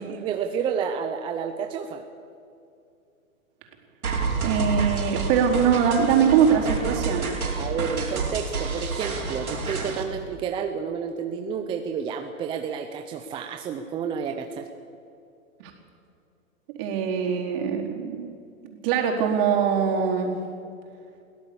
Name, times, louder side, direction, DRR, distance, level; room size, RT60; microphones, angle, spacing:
voice 1, 0.0-2.0 7.6-14.7, right 7 dB, 10° right, 5 dB, 0.6 m, -30 dB
sound 1, 4.0-10.0, right 4 dB, 90° right, 4.9 m, -29 dB
voice 2, 4.4-7.3 15.6-15.7 16.7-18.3 18.6-20.4, right 7 dB, 40° right, 0 dB, 4.3 m, -22 dB
23.0 x 17.0 x 7.0 m, 2.5 s
hypercardioid pair, 135°, 42 cm